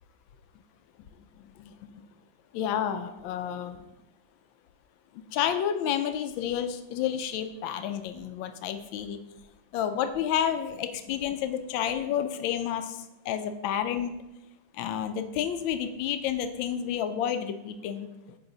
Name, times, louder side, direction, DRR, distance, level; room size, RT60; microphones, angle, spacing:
voice 1, 1.6-2.0 2.5-3.8 5.3-9.2 9.7-14.1 14.7-18.1, left 9 dB, 85° left, 9 dB, 1.3 m, -30 dB
8.7 x 3.5 x 3.8 m, 0.95 s
omnidirectional pair, 2.1 m